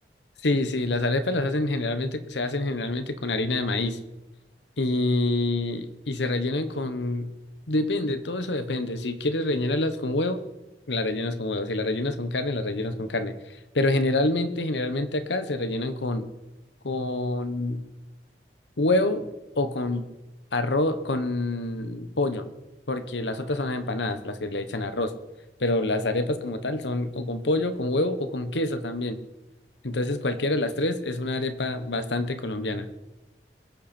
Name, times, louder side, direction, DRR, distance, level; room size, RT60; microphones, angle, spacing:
voice 1, 0.4-4.0 4.8-7.3 7.7-10.4 10.9-13.3 13.7-16.3 16.8-17.8 18.8-19.3 19.5-20.0 20.5-22.5 22.9-25.1 25.6-29.2 29.8-32.9, left 2 dB, 85° left, 10 dB, 1.2 m, -26 dB
22.0 x 8.8 x 4.4 m, 1.0 s
head